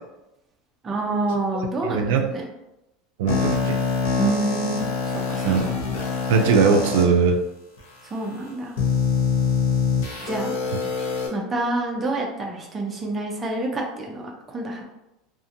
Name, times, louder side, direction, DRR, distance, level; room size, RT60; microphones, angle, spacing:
voice 1, 0.8-2.4 4.2-5.5 8.0-8.8 10.2-10.6 11.3-14.8, right 2 dB, 20° right, 0 dB, 0.5 m, -27 dB
voice 2, 1.8-2.3 3.2-3.8 5.4-5.7 6.3-7.4, right 5 dB, 80° right, 3 dB, 0.3 m, -19 dB
sound 1, 3.3-7.0 7.8-7.9 8.8-11.3, left 5 dB, 80° left, 0.8 m, -24 dB
2.7 x 2.5 x 2.5 m, 0.93 s
supercardioid pair, 145°, 0 cm